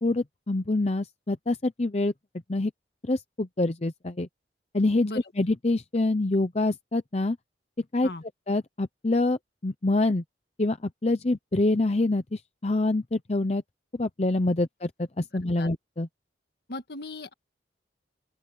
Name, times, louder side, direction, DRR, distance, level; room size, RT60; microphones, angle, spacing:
voice 1, 0.0-2.1 2.5-2.7 3.0-4.3 4.7-5.1 5.4-7.4 7.9-8.1 8.5-10.2 10.6-13.6 13.9-16.1, left 2 dB, 35° left, 0.7 m, -26 dB
voice 2, 16.7-17.3, left 2 dB, 65° left, 1.6 m, -36 dB
open air
head